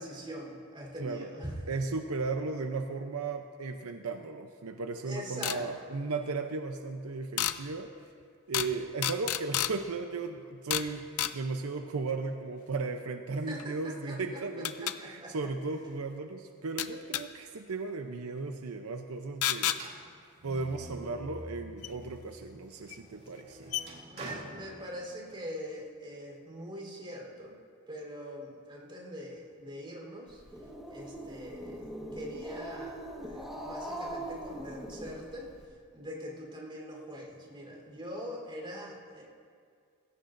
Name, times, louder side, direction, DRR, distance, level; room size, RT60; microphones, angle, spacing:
voice 1, 0.0-1.5 5.1-5.9 13.5-14.4 14.8-15.3 24.1-27.6 27.9-30.4 30.9-31.8 32.1-35.5 35.9-39.2, equal, 25° right, -2 dB, 3.8 m, -43 dB
voice 2, 1.0-1.3 1.7-7.9 8.5-20.0 20.4-23.7, right 3 dB, 80° right, 6 dB, 0.7 m, -36 dB
sound 1, 5.4-5.6 7.4-7.6 8.5-8.7 9.0-9.7 10.7-10.9 11.2-11.3 13.6-13.7 14.6-15.0 16.8-17.2 19.4-19.8 21.8-21.9 22.9-23.0 23.4-23.5 23.7-23.8, left 12 dB, 90° left, 0.5 m, -30 dB
sound 2, 19.7-22.1 22.6-25.4, right 1 dB, 50° right, 2.2 m, -47 dB
Growling, 30.3-35.6, right 1 dB, ahead, 1.6 m, -41 dB
20.0 x 16.5 x 2.6 m, 2.2 s
head